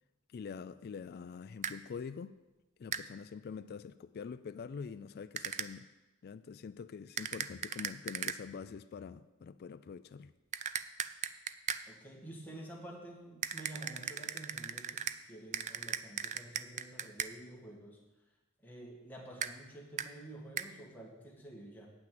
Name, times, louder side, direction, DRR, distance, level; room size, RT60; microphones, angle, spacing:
voice 1, 0.3-2.4 2.8-5.9 6.2-10.3, left 6 dB, 50° left, 14 dB, 0.3 m, -45 dB
sound 1, 1.6-1.8 2.9-3.1 5.4-5.7 7.2-8.4 10.5-11.8 13.4-15.2 15.5-17.3 19.4-19.5 20.0-20.1 20.6-20.7, right 8 dB, 35° right, 0.4 m, -37 dB
voice 2, 11.9-18.0 18.6-21.9, right 1 dB, 10° left, -2 dB, 1.9 m, -50 dB
8.9 x 5.9 x 7.8 m, 1.0 s
head